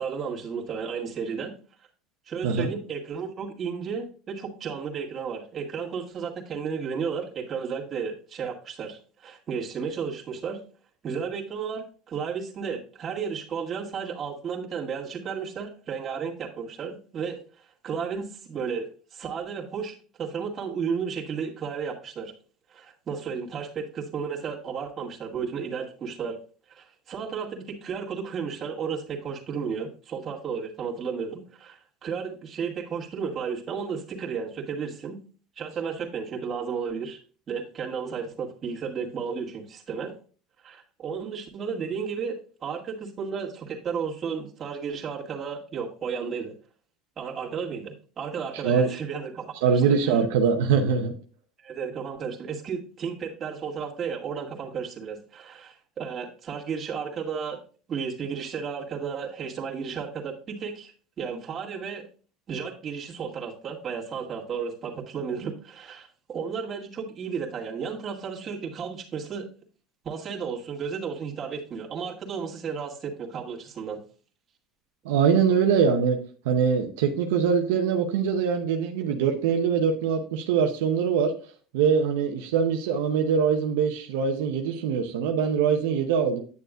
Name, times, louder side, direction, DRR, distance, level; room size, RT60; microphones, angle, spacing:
voice 1, 0.0-1.5 2.3-10.6 11.0-22.3 22.7-26.4 26.7-35.2 35.6-37.2 37.5-40.1 40.6-46.5 47.2-50.2 51.6-57.6 57.9-60.9 61.2-62.1 62.5-69.5 70.0-74.0, right 6 dB, 35° right, -2 dB, 2.0 m, -33 dB
voice 2, 49.6-51.1 75.0-76.2 76.4-81.3 81.7-86.4, right 6 dB, 80° right, 3 dB, 0.8 m, -23 dB
9.6 x 6.8 x 2.5 m, 0.39 s
supercardioid pair, 100°, 0 cm